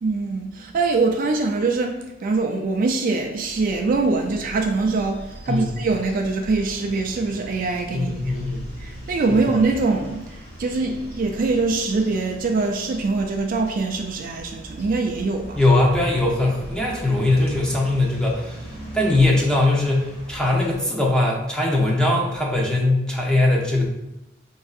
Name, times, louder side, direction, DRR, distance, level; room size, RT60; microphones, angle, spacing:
voice 1, 0.0-8.4 8.8-15.6, right 3 dB, 45° right, 3 dB, 0.3 m, -23 dB
sound 1, 3.3-20.8, equal, 55° left, 1.3 m, -40 dB
voice 2, 7.9-8.7 9.3-9.4 15.5-18.6 18.9-23.9, left 2 dB, 5° left, -3 dB, 0.7 m, -20 dB
5.4 x 2.6 x 2.4 m, 0.93 s
head